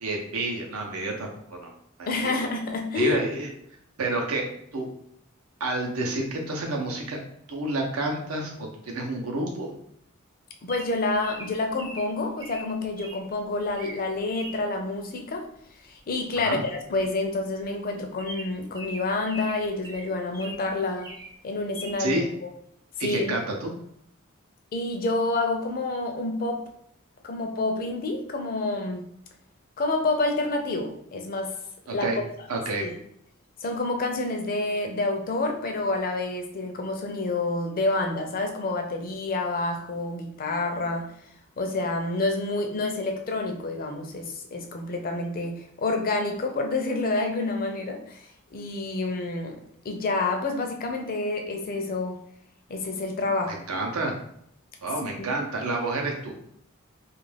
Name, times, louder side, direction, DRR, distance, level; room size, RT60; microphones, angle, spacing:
voice 1, 0.0-1.7 2.0-2.3 2.9-3.5 4.0-4.5 4.7-4.9 5.6-7.2 7.5-9.7 16.4-16.6 22.0-22.3 23.0-23.7 31.9-32.2 32.5-32.9 53.5-54.1 54.8-56.3, right 2 dB, 85° right, 1 dB, 0.7 m, -29 dB
voice 2, 2.1-3.2 10.6-15.5 15.8-21.1 21.4-22.5 23.0-23.3 24.7-26.6 27.2-29.0 29.8-31.6 31.9-32.1 32.8-32.9 33.6-41.1 41.6-49.6 49.8-52.2 52.7-53.7 55.2-55.3, left 2 dB, 45° left, 3 dB, 0.4 m, -28 dB
Bird vocalization bird call bird song, 10.7-13.2 13.7-14.0 14.3-14.6 16.1-16.3 16.6-16.7 17.0-17.1 17.6-17.7 18.2-20.6 21.0-21.3 21.7-22.0, equal, 20° right, 0.5 m, -41 dB
2.4 x 2.2 x 3.2 m, 0.69 s
head